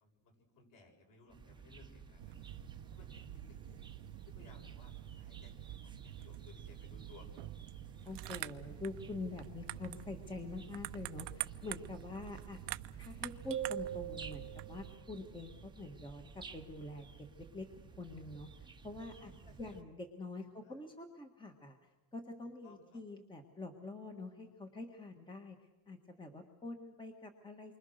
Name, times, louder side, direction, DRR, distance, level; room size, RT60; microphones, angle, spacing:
voice 1, 0.0-2.5 2.9-3.7 4.3-7.4 19.0-19.8 20.6-20.8 22.6-23.0, left 3 dB, 45° left, 2 dB, 7.5 m, -61 dB
sound 1, 1.3-19.8, right 5 dB, 10° right, 1.2 m, -54 dB
sound 2, 2.2-15.0, right 16 dB, 70° right, 1.0 m, -47 dB
voice 2, 8.0-12.6 13.0-17.7 18.0-19.3 19.6-27.8, left 2 dB, 10° left, 5 dB, 1.6 m, -46 dB
sound 3, 13.5-15.0, right 10 dB, 30° right, 1.0 m, -41 dB
28.5 x 24.5 x 6.6 m, 1.1 s
cardioid pair, 150°, 45 cm